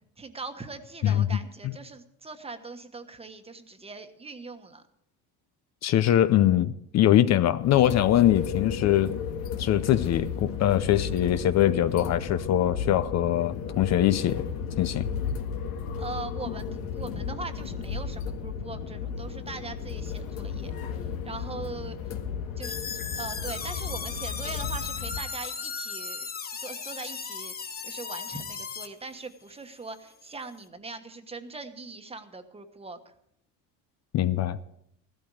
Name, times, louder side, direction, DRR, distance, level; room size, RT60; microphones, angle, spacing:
voice 1, 0.2-4.8 16.0-20.7 21.2-22.1 22.6-33.1, right 3 dB, 15° right, 1.2 m, -41 dB
voice 2, 5.8-9.2 9.6-14.4 14.8-15.0 34.1-34.6, left 12 dB, 45° left, 0.6 m, -22 dB
sound 1, 7.6-25.2, left 6 dB, 80° left, 2.0 m, -34 dB
sound 2, 22.6-28.9, left 5 dB, 25° left, 1.3 m, -36 dB
15.5 x 12.5 x 4.8 m
cardioid pair, 130°, 36 cm